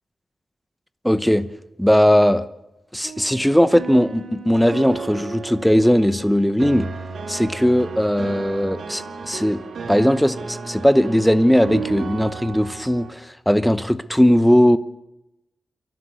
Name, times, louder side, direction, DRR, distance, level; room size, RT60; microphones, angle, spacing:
voice 1, 1.0-1.5 1.8-2.5 2.9-6.9 7.3-9.6 9.9-14.8, equal, ahead, 0.9 m, -18 dB
sound 1, 3.0-13.1, right 4 dB, 85° right, 2.6 m, -34 dB
29.5 x 12.0 x 8.4 m
wide cardioid pair, 135°, 0 cm